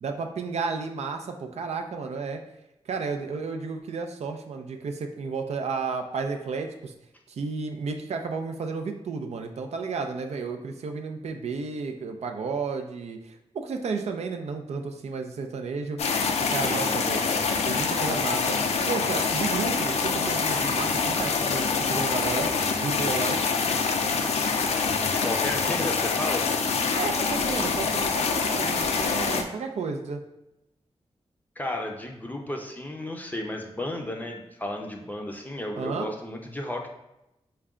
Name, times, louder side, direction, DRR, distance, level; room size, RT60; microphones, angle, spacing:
voice 1, 0.0-2.4 2.9-6.9 7.3-16.0 16.5-17.3 17.7-18.6 18.9-22.5 22.8-23.4 26.9-30.2 35.8-36.1, right 4 dB, 85° right, 4 dB, 0.4 m, -32 dB
sound 1, 16.0-29.4, left 5 dB, 85° left, 0.4 m, -25 dB
voice 2, 25.0-26.5 31.6-36.9, left 1 dB, 15° left, 2 dB, 0.5 m, -33 dB
4.7 x 2.2 x 3.6 m, 0.89 s
wide cardioid pair, 90°, 11 cm